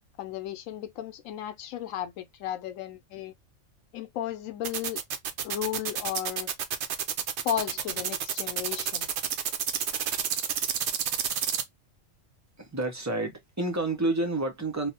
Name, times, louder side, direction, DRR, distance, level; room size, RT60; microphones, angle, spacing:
voice 1, 0.2-3.3 3.9-5.0 5.4-6.5 7.4-9.1, left 11 dB, 85° left, 1.0 m, -34 dB
sound 1, 4.6-11.6, right 8 dB, 65° right, 0.8 m, -29 dB
voice 2, 12.6-14.9, right 2 dB, 25° right, 0.4 m, -29 dB
3.0 x 2.0 x 2.7 m
omnidirectional pair, 1.3 m